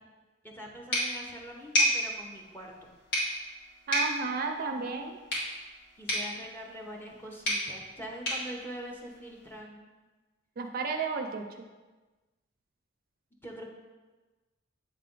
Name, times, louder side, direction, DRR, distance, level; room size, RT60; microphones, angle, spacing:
voice 1, 0.4-2.9 6.0-9.9 13.4-13.6, equal, 10° left, -1 dB, 0.8 m, -43 dB
sound 1, 0.9-9.6, equal, 60° left, 1.8 m, -33 dB
voice 2, 3.9-5.2 10.6-11.5, right 4 dB, 50° right, 5 dB, 0.4 m, -32 dB
7.9 x 3.3 x 3.8 m, 1.2 s
head